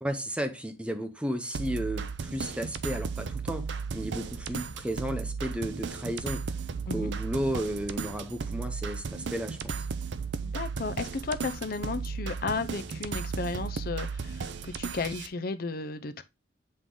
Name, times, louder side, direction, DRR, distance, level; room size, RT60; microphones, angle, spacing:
voice 1, 0.0-6.6 6.9-9.9, equal, 5° right, 0.7 m, -33 dB
sound 1, 1.5-15.3, right 5 dB, 70° right, 0.6 m, -35 dB
voice 2, 10.4-16.2, left 4 dB, 55° left, 0.6 m, -34 dB
7.8 x 3.6 x 3.8 m
head